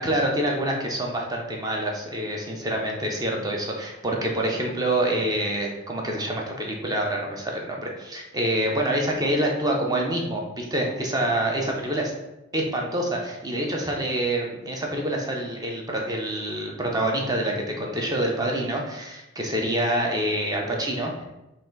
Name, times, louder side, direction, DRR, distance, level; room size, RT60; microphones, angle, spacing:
voice 1, 0.0-12.1 12.5-21.2, right 1 dB, 20° right, 0 dB, 0.6 m, -26 dB
4.0 x 2.5 x 3.9 m, 0.98 s
head